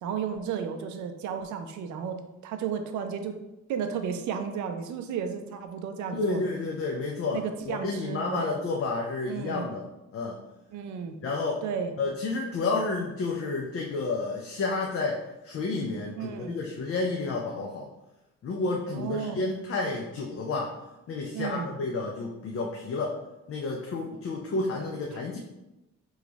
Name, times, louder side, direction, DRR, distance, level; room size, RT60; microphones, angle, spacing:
voice 1, 0.0-3.4 3.7-6.4 7.3-8.5 9.3-9.7 10.7-11.2 11.6-11.9 16.1-16.6 18.9-19.5 21.3-21.7 25.1-25.2, right 7 dB, 75° right, 7 dB, 0.5 m, -33 dB
voice 2, 6.1-9.8 10.1-10.4 11.2-11.6 12.0-17.9 18.4-20.7 21.1-23.2 23.5-25.4, left 3 dB, 50° left, 0 dB, 0.5 m, -30 dB
3.1 x 2.4 x 3.9 m, 0.96 s
cardioid pair, 90°, 30 cm